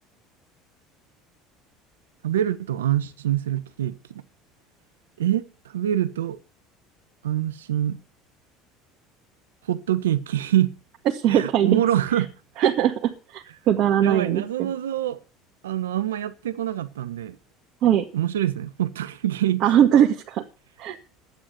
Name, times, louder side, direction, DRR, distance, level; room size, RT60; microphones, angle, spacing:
voice 1, 2.2-4.2 5.2-6.4 7.2-8.0 9.7-10.8 11.3-12.3 14.0-15.2 15.6-17.4 18.1-19.6, right 12 dB, 90° right, 1.1 m, -25 dB
voice 2, 11.2-11.8 12.6-14.7 17.8-18.0 19.6-20.4 20.8-21.0, right 10 dB, 55° right, 1.9 m, -20 dB
11.5 x 9.4 x 6.8 m
hypercardioid pair, 80°, 0 cm